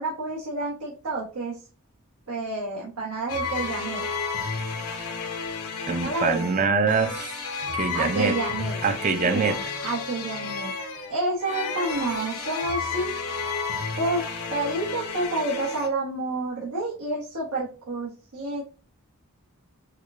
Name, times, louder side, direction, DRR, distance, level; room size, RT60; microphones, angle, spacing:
voice 1, 0.0-1.6 2.3-4.1 6.0-6.7 7.9-8.8 9.2-10.7 11.1-13.1 14.0-14.2 14.5-18.6, right 2 dB, 85° right, 1.0 m, -29 dB
sound 1, 3.3-15.9, left 4 dB, 80° left, 0.7 m, -32 dB
voice 2, 5.9-7.3 7.7-8.4 8.8-9.6, right 5 dB, 35° right, 0.3 m, -24 dB
4.6 x 2.2 x 2.4 m
head